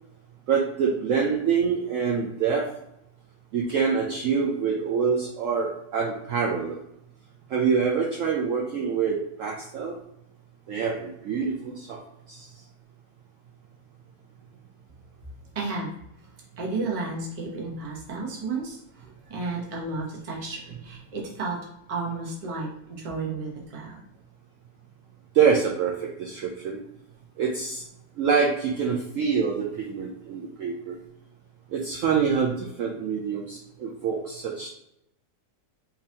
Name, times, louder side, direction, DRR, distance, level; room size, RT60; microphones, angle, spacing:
voice 1, 0.5-2.7 3.5-6.8 7.5-9.9 10.7-12.0 12.3-12.5 25.3-26.8 27.4-27.8 28.2-31.0 31.7-34.7, right 6 dB, 70° right, -1 dB, 0.8 m, -26 dB
voice 2, 15.5-15.9 16.6-24.0, right 3 dB, 30° right, -2 dB, 0.6 m, -33 dB
3.8 x 2.8 x 2.7 m, 0.80 s
omnidirectional pair, 1.8 m